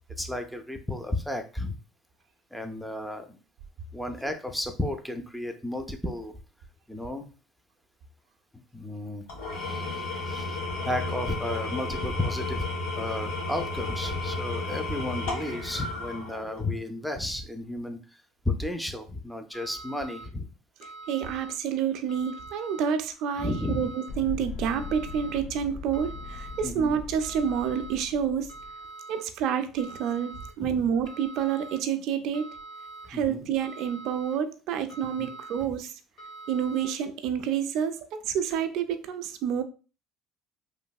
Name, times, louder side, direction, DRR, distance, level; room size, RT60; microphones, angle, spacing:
voice 1, 0.2-1.8 2.5-3.4 3.9-6.4 6.9-7.3 8.7-9.3 9.5-12.7 12.9-18.0 18.5-20.5 23.4-23.9 26.6-27.0 30.6-30.9 33.1-33.5 35.2-35.3, left 1 dB, ahead, 0.5 m, -33 dB
Engine / Tools, 9.3-16.8, left 2 dB, 90° left, 1.3 m, -33 dB
sound 1, 19.5-20.3 20.8-21.5 22.1-22.8 23.4-24.1 24.6-25.4 25.9-26.7 27.2-27.9 28.5-29.2 29.8-30.5 31.0-31.8 32.3-33.1 33.6-34.3 34.9-35.6 36.2-36.9, right 3 dB, 50° left, 1.5 m, -44 dB
voice 2, 21.1-28.5 29.1-32.5 33.1-35.9 36.5-39.6, right 8 dB, 70° right, 0.4 m, -28 dB
sound 2, 24.1-28.7, left 4 dB, 65° left, 0.5 m, -40 dB
3.1 x 2.6 x 2.3 m
supercardioid pair, 90°, 0 cm